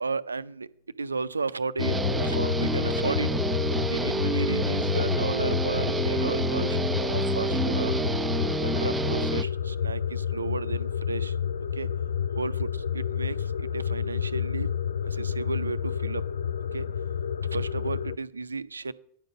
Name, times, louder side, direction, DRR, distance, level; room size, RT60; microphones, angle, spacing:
voice 1, 0.0-0.7 1.0-3.3 3.9-6.8 7.1-8.0 8.6-11.3 11.8-11.9 12.4-14.7 15.0-16.2 16.7-16.8 17.5-18.9, right 4 dB, 75° right, 15 dB, 0.4 m, -33 dB
sound 1, 1.8-18.2, left 8 dB, 70° left, 0.3 m, -29 dB
Guitar, 1.8-9.4, right 3 dB, 10° right, 0.4 m, -29 dB
10.0 x 6.6 x 6.7 m, 0.65 s
figure-of-eight pair, 90°, 0 cm